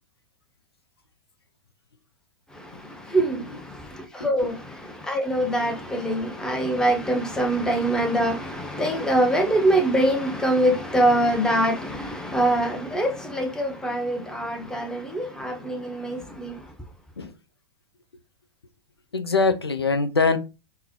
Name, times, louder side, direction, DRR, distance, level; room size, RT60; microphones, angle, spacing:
voice 1, 2.5-16.7, right 1 dB, 5° left, 0.6 m, -24 dB
voice 2, 3.2-3.6 4.4-4.5 17.2-17.3 19.1-20.4, left 4 dB, 85° left, 0.4 m, -23 dB
3.7 x 2.0 x 2.7 m
figure-of-eight pair, 95°, 13 cm